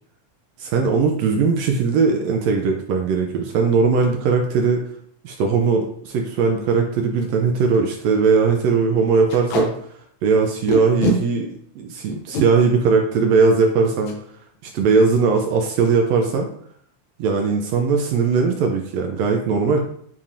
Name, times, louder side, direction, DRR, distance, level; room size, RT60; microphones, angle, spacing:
voice 1, 0.6-4.8 5.2-9.7 10.2-11.5 11.8-14.2 14.6-16.5 17.2-19.8, right 4 dB, 80° right, 2 dB, 1.6 m, -19 dB
Packing tape duct tape, 5.6-5.8 6.3-6.4 6.6-6.7 7.2-7.3 7.6-7.8 8.1-8.3 9.3-9.7 10.7-11.2 12.1-12.5 14.0-14.2 14.5-14.7 15.0-15.4, equal, 80° left, 2.2 m, -23 dB
7.0 x 2.9 x 2.5 m, 0.63 s
omnidirectional pair, 3.3 m